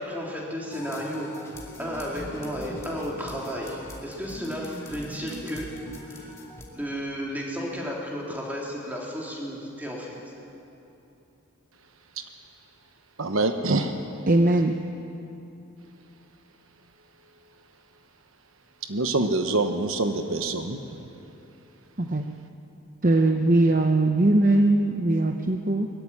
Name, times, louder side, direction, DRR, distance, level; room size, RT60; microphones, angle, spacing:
voice 1, 0.0-1.5 1.8-5.7 6.0-6.3 6.7-10.2, equal, 10° right, -3 dB, 3.4 m, -33 dB
sound 1, 0.7-6.7, left 1 dB, 15° left, 2.4 m, -41 dB
voice 2, 13.2-14.0 18.8-20.8, right 2 dB, 70° right, 7 dB, 1.1 m, -25 dB
voice 3, 14.3-14.8 22.0-22.3 23.0-25.9, right 2 dB, 40° right, 5 dB, 0.8 m, -20 dB
21.0 x 15.0 x 10.0 m, 2.9 s
head